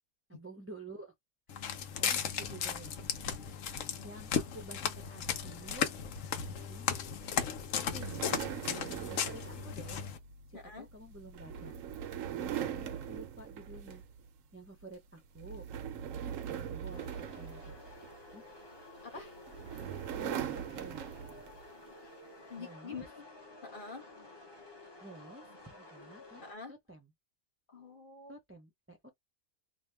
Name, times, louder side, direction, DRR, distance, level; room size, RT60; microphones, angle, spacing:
voice 1, 0.3-1.1 1.5-6.0 6.3-6.9 7.8-8.3 8.6-10.1 10.5-11.7 12.3-14.0 14.5-15.7 16.5-17.7 18.3-18.4 19.1-19.4 19.7-19.8 20.1-21.1 22.6-23.1 25.0-27.1 28.3-29.1, right 2 dB, 15° right, 0.5 m, -51 dB
Walk footsteps, 1.5-10.2, left 8 dB, 75° left, 1.0 m, -36 dB
sound 1, 7.7-14.3 14.7-14.9 15.4-18.4 19.2-21.6, right 9 dB, 80° right, 1.0 m, -41 dB
voice 2, 10.5-10.9 19.0-19.3 22.0-22.1 22.5-23.2 23.6-24.0 26.4-26.7 27.7-28.3, left 5 dB, 45° left, 1.0 m, -46 dB
sound 2, 16.9-26.5, left 2 dB, 25° left, 0.7 m, -53 dB
2.7 x 2.2 x 3.3 m
omnidirectional pair, 1.4 m